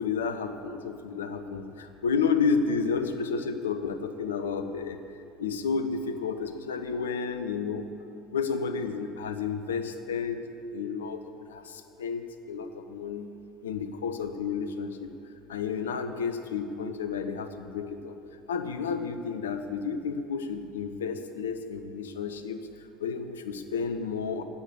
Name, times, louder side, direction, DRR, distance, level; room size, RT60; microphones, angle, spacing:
voice 1, 0.0-5.0 5.4-7.9 8.3-10.4 10.7-13.3 13.6-15.1 15.5-18.2 18.5-24.4, left 5 dB, 75° left, 8 dB, 0.7 m, -31 dB
9.6 x 8.6 x 8.3 m, 2.6 s
figure-of-eight pair, 65°, 0 cm